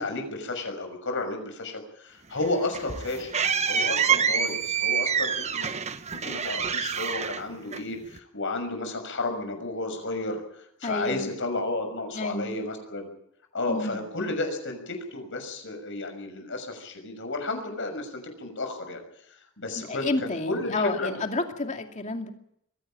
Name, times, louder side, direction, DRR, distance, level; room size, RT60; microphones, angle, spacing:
voice 1, 0.0-3.3 3.7-5.7 6.1-10.4 10.8-13.1 13.5-19.0 19.6-21.1, left 2 dB, 60° left, 6 dB, 6.3 m, -32 dB
sound 1, 2.4-8.2, right 7 dB, 30° right, 0.9 m, -27 dB
voice 2, 10.8-11.3 12.1-12.5 13.7-14.0 19.7-22.3, left 2 dB, 35° left, 4 dB, 2.5 m, -30 dB
23.0 x 16.5 x 8.9 m, 0.74 s
head